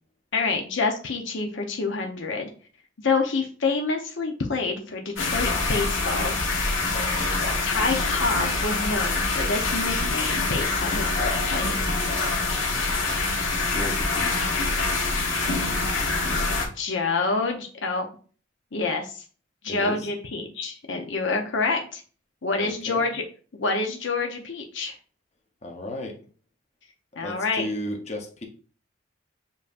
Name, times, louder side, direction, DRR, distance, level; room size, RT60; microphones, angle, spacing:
voice 1, 0.3-2.5 3.0-6.3 7.6-11.7 16.7-18.0 18.7-19.2 19.6-22.0 22.4-23.2 23.5-24.9 27.2-27.7, left 3 dB, 70° left, 3 dB, 0.7 m, -27 dB
sound 1, 5.2-16.7, left 3 dB, 90° left, 1.2 m, -25 dB
voice 2, 13.7-14.6 19.7-20.1 22.6-23.1 25.6-26.2 27.2-28.4, left 1 dB, 35° left, 1 dB, 0.8 m, -34 dB
7.2 x 2.8 x 2.5 m, 0.40 s
head